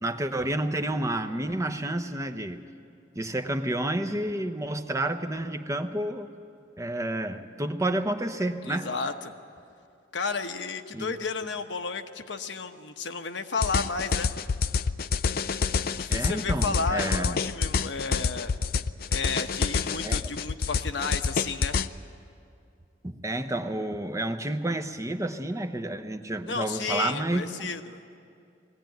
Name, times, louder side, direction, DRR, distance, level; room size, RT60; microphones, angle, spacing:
voice 1, 0.0-2.6 3.1-6.3 6.8-8.9 10.9-11.1 16.1-17.4 20.0-20.3 23.0-27.7, right 1 dB, 15° right, 6 dB, 0.8 m, -30 dB
voice 2, 8.6-9.3 10.1-14.3 15.9-18.5 19.1-21.8 26.5-28.0, left 4 dB, 75° left, 6 dB, 1.1 m, -32 dB
sound 1, 13.6-21.9, left 5 dB, 55° left, 0.5 m, -27 dB
22.0 x 17.0 x 9.2 m, 2.4 s
head